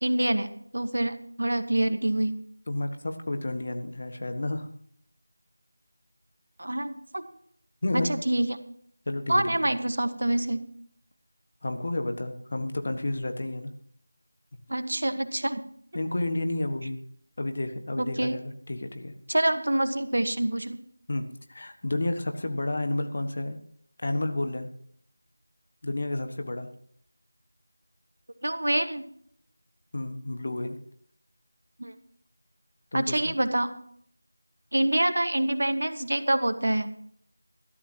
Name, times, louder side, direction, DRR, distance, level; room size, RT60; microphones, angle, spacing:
voice 1, 0.0-2.3 6.6-7.3 7.9-8.6 9.3-10.6 14.7-15.6 18.0-18.4 19.3-20.8 28.4-29.0 31.8-31.9 32.9-33.7 34.7-36.9, right 1 dB, 65° right, 9 dB, 1.5 m, -26 dB
voice 2, 2.7-4.7 7.8-8.1 9.1-9.7 11.6-13.7 15.9-17.0 17.4-19.1 21.1-21.2 21.5-23.6 24.0-24.7 25.8-26.7 29.9-30.8 32.9-33.3, left 2 dB, 45° left, 7 dB, 1.5 m, -31 dB
19.0 x 13.0 x 3.0 m, 0.63 s
figure-of-eight pair, 170°, 0 cm